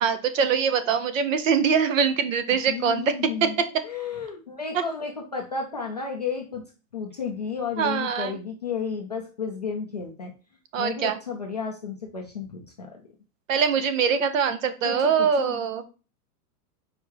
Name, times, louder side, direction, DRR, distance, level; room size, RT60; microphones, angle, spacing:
voice 1, 0.0-3.1 3.4-3.7 7.8-8.3 10.7-11.2 13.5-15.8, right 6 dB, 55° right, 11 dB, 0.9 m, -23 dB
voice 2, 2.7-6.6 6.9-10.3 10.8-13.0 14.8-15.5, left 5 dB, 30° left, 0 dB, 0.4 m, -32 dB
4.9 x 4.5 x 4.5 m, 0.34 s
supercardioid pair, 170°, 48 cm